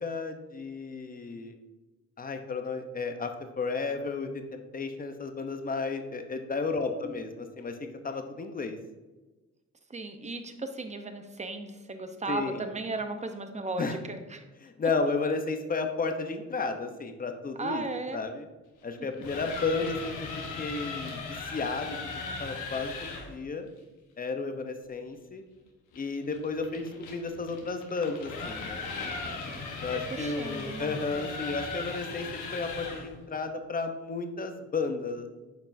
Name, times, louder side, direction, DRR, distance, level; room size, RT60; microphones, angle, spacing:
voice 1, 0.0-1.6 2.2-7.8 8.0-8.8 12.3-12.6 13.8-14.0 14.6-17.8 18.1-18.5 18.8-20.1 20.6-22.0 22.4-23.7 24.2-25.4 25.9-28.9 29.8-35.3, left 4 dB, 30° left, 6 dB, 0.8 m, -33 dB
voice 2, 6.7-7.3 9.9-14.4 17.6-18.2 29.9-31.3, right 3 dB, 25° right, 7 dB, 0.8 m, -36 dB
sound 1, 19.0-23.3 25.9-33.1, left 4 dB, 90° left, 1.2 m, -38 dB
9.0 x 5.3 x 2.7 m, 1.2 s
cardioid pair, 90°, 30 cm